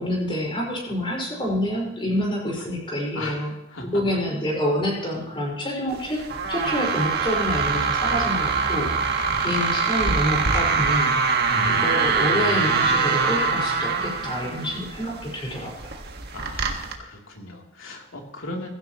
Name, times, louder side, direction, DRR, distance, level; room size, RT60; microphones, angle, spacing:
voice 1, 0.0-3.5 3.8-6.2 6.5-16.0, equal, 25° left, -2 dB, 5.1 m, -27 dB
voice 2, 3.1-4.0 9.3-10.0 11.5-12.8 16.3-18.7, left 1 dB, 80° left, 0 dB, 3.2 m, -37 dB
sound 1, 5.9-16.9, right 4 dB, 55° right, 1.6 m, -24 dB
16.5 x 16.0 x 3.1 m, 0.89 s
head